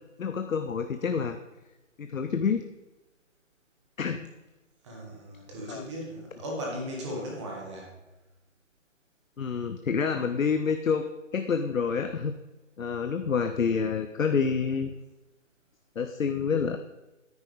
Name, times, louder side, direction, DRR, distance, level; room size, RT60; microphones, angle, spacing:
voice 1, 0.2-1.4 2.0-2.6 4.0-4.3 5.7-5.8 9.4-11.0 11.3-12.4 12.8-14.9 16.0-16.8, left 6 dB, 85° left, 8 dB, 0.8 m, -28 dB
voice 2, 4.8-7.9, equal, 20° right, -2 dB, 1.8 m, -37 dB
9.6 x 9.5 x 3.4 m, 1.1 s
figure-of-eight pair, 160°, 39 cm